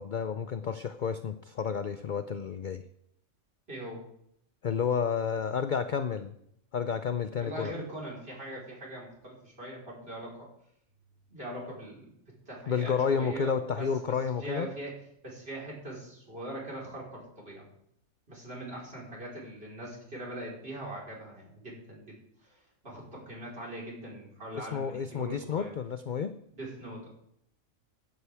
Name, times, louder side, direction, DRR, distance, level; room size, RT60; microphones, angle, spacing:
voice 1, 0.0-2.8 4.6-6.3 6.7-7.7 12.7-14.7 24.6-26.3, left 6 dB, 55° left, 10 dB, 0.5 m, -31 dB
voice 2, 3.7-4.0 7.4-10.5 11.3-12.1 12.5-14.9 15.2-17.7 18.3-22.2 22.4-25.7 26.5-27.1, right 1 dB, 45° right, -4 dB, 4.4 m, -41 dB
15.5 x 11.0 x 3.5 m, 0.74 s
omnidirectional pair, 1.4 m